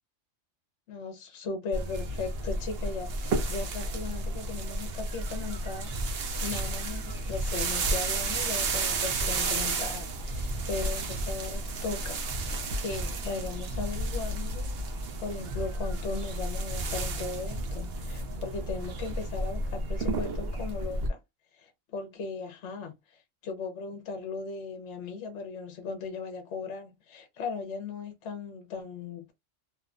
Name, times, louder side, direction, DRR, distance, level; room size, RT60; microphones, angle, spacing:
voice 1, 0.9-14.7 15.2-21.2 21.6-29.3, left 4 dB, 70° left, 0.9 m, -38 dB
sound 1, 1.7-21.1, right 2 dB, 60° right, 0.8 m, -32 dB
sound 2, 6.2-15.3, right 2 dB, 30° left, 1.0 m, -46 dB
2.8 x 2.1 x 2.4 m
omnidirectional pair, 1.3 m